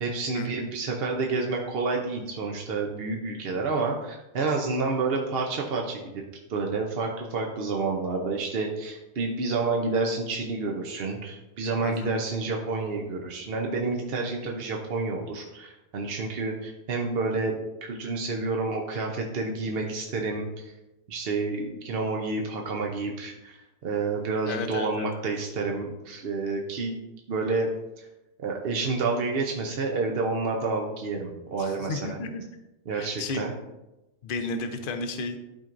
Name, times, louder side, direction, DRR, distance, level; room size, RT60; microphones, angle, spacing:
voice 1, 0.0-6.2 6.5-20.6 21.1-27.0 27.3-27.7 28.0-28.1 28.4-32.2 32.9-33.5, right 3 dB, 55° right, 0 dB, 0.8 m, -29 dB
voice 2, 11.8-12.1 24.5-25.1 31.6-32.4 32.9-33.5 34.2-35.4, left 3 dB, 50° left, 7 dB, 0.7 m, -33 dB
11.5 x 4.4 x 2.5 m, 0.99 s
omnidirectional pair, 1.4 m